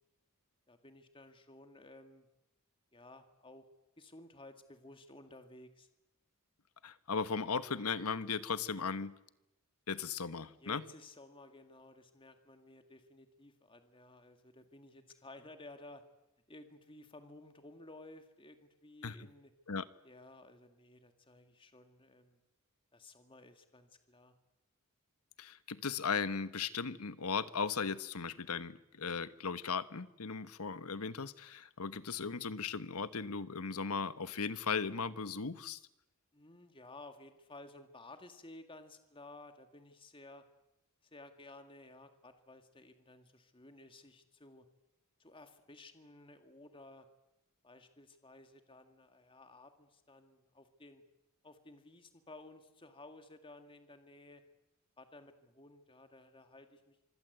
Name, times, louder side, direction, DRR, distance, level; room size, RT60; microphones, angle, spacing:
voice 1, 0.7-2.3 2.9-3.7 4.0-5.9 10.6-16.0 16.5-19.5 20.0-22.4 22.9-24.3 36.3-40.4 41.0-44.7 45.2-47.1 47.6-51.0 51.4-54.4 55.0-57.1, left 2 dB, 25° left, 2.0 m, -55 dB
voice 2, 6.8-9.2 9.9-10.8 19.0-19.3 19.7-19.8 25.4-35.8, left 5 dB, 80° left, 1.2 m, -37 dB
25.5 x 25.0 x 8.0 m
head